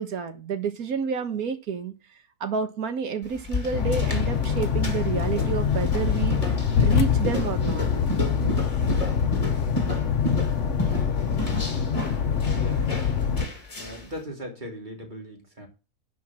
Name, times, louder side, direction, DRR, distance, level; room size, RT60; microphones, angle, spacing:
voice 1, 0.0-1.9 2.4-6.4 6.8-7.9, right 6 dB, 70° right, 10 dB, 1.7 m, -29 dB
sound 1, 3.2-14.1, left 1 dB, 25° left, 2.0 m, -33 dB
sound 2, 3.7-13.5, left 7 dB, 55° left, 1.2 m, -24 dB
voice 2, 12.5-13.4 13.8-15.7, equal, 30° right, 1 dB, 3.1 m, -39 dB
11.0 x 4.7 x 7.3 m, 0.31 s
omnidirectional pair, 1.6 m